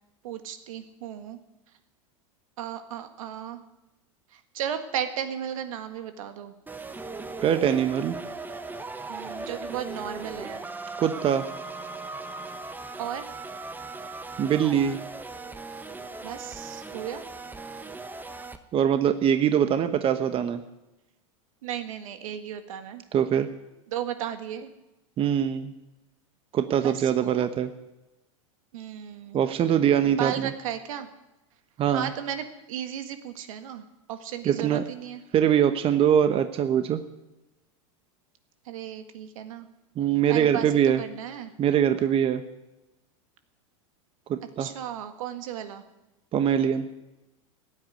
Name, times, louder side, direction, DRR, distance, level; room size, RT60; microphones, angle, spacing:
voice 1, 0.2-1.4 2.6-3.6 4.3-6.5 9.1-10.7 13.0-13.3 16.2-17.2 21.6-23.0 23.9-24.7 26.8-27.5 28.7-29.4 30.2-31.1 31.9-35.2 38.6-39.7 40.3-41.5 44.6-45.8, right 9 dB, 75° right, 8 dB, 1.8 m, -35 dB
sound 1, 6.7-18.6, right 3 dB, 10° right, 1.1 m, -38 dB
voice 2, 7.4-8.2 11.0-11.5 14.4-15.0 18.7-20.6 23.1-23.5 25.2-25.7 26.5-27.7 29.3-30.5 31.8-32.1 34.4-34.8 35.3-37.0 40.0-41.0 41.6-42.4 44.3-44.7 46.3-46.9, right 9 dB, 30° right, 9 dB, 1.1 m, -23 dB
15.5 x 9.0 x 9.6 m, 0.98 s
hypercardioid pair, 110°, 17 cm